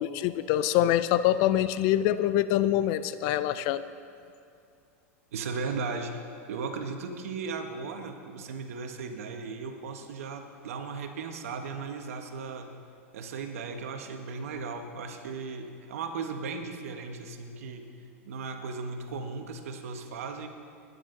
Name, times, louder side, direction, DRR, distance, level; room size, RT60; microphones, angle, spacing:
voice 1, 0.0-3.9, left 12 dB, 55° left, 14 dB, 0.6 m, -25 dB
voice 2, 5.3-6.2 6.5-12.7 13.1-17.8 18.2-20.5, right 4 dB, 80° right, 5 dB, 1.4 m, -36 dB
20.5 x 9.9 x 3.9 m, 2.5 s
hypercardioid pair, 115°, 8 cm